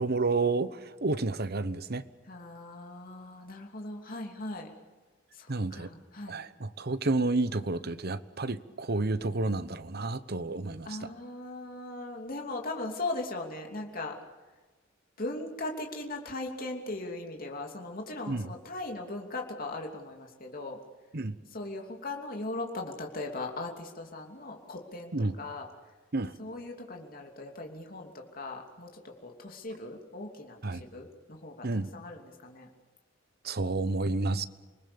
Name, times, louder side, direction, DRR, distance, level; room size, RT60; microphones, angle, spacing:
voice 1, 0.0-2.0 5.5-5.9 6.3-11.1 18.3-18.5 21.1-21.4 25.1-25.4 26.1-26.3 30.6-30.8 31.6-31.9 33.4-34.4, right 3 dB, 55° right, 13 dB, 1.1 m, -30 dB
voice 2, 2.3-4.7 5.3-6.4 10.8-14.2 15.2-20.8 21.5-25.7 26.4-31.7 31.9-32.7, left 2 dB, 50° left, 2 dB, 3.0 m, -39 dB
28.0 x 20.0 x 7.1 m, 1.3 s
head